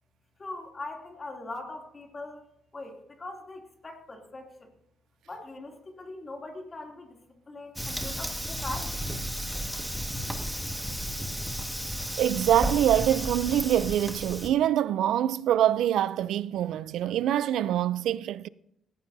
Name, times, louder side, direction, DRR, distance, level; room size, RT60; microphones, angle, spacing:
voice 1, 0.4-2.4 2.7-4.7 5.3-9.0, left 2 dB, 30° left, 2.8 m, -41 dB
Fire, 7.8-14.5, equal, 5° right, 1.7 m, -33 dB
voice 2, 12.2-18.5, right 11 dB, 80° right, 0.5 m, -25 dB
18.0 x 15.0 x 2.7 m
cardioid pair, 90°, 0 cm